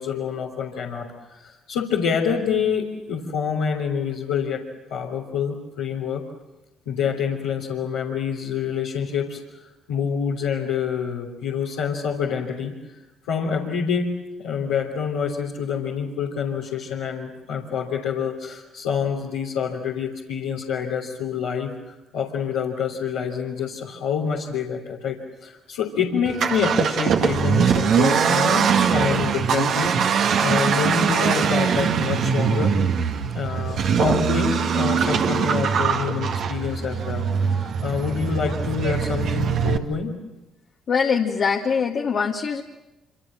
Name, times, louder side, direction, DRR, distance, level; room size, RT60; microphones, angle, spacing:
voice 1, 0.0-4.6 4.9-6.2 6.8-13.0 13.3-32.8 33.3-40.1, left 6 dB, 85° left, -4 dB, 3.2 m, -27 dB
Accelerating revving vroom, 26.2-39.8, right 7 dB, 65° right, 2.0 m, -22 dB
voice 2, 40.9-42.6, left 6 dB, 55° left, 1 dB, 1.9 m, -22 dB
26.5 x 26.0 x 7.6 m, 1.0 s
hypercardioid pair, 55°, 0 cm